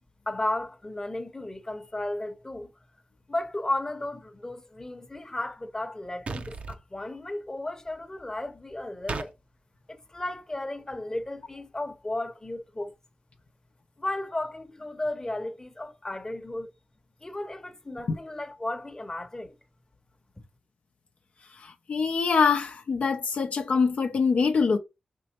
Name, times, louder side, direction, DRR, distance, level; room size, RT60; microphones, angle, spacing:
voice 1, 0.3-2.7 3.3-9.3 9.9-12.9 14.0-16.7 17.2-19.5 20.4-20.5, left 1 dB, 25° left, 0.8 m, -34 dB
sound 1, 6.3-6.8 9.1-9.3, right 4 dB, 70° right, 0.6 m, -34 dB
voice 2, 21.6-24.8, left 5 dB, 80° left, 0.6 m, -24 dB
5.3 x 3.1 x 2.9 m
wide cardioid pair, 70°, 2 cm